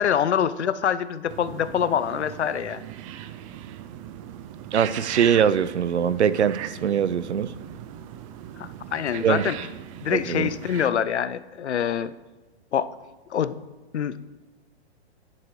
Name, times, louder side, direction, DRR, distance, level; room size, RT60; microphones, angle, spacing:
voice 1, 0.0-2.9 8.6-9.6 10.0-12.1 12.7-12.9 13.3-13.5 13.9-14.2, left 8 dB, 85° left, 15 dB, 0.6 m, -25 dB
sound 1, 1.3-10.9, right 10 dB, 30° right, 0.5 m, -39 dB
voice 2, 4.7-7.5 9.2-9.5 10.1-10.5, right 8 dB, 90° right, 15 dB, 0.6 m, -22 dB
11.5 x 10.0 x 3.2 m, 1.2 s
hypercardioid pair, 120°, 33 cm